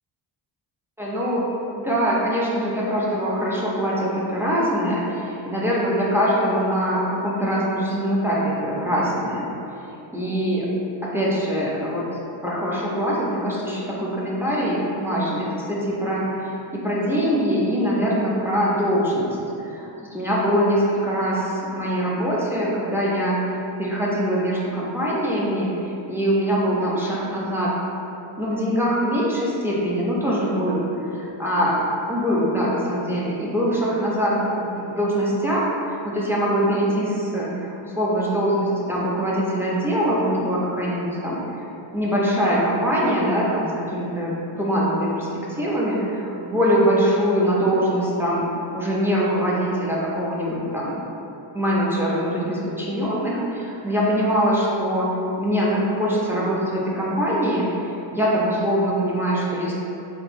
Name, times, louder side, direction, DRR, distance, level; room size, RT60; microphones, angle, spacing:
voice 1, 1.0-1.4 1.8-9.5 10.1-10.7 11.0-23.4 23.8-25.8 26.1-27.7 28.4-31.8 32.1-41.4 41.9-51.0 51.5-55.1 55.4-59.7, equal, 5° right, -6 dB, 0.3 m, -23 dB
2.8 x 2.5 x 3.3 m, 2.9 s
wide cardioid pair, 150°, 48 cm